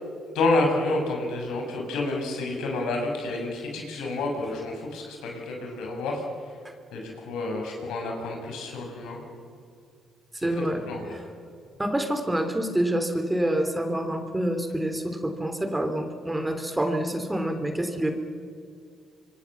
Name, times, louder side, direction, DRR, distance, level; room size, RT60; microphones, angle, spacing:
voice 1, 0.3-6.2 6.9-9.2 10.5-11.2, left 2 dB, 90° left, 1 dB, 6.5 m, -29 dB
voice 2, 10.4-10.8 11.1-11.2 11.8-18.1, right 1 dB, 10° right, 6 dB, 3.3 m, -27 dB
26.0 x 23.5 x 7.4 m, 2.3 s
cardioid pair, 90°, 0 cm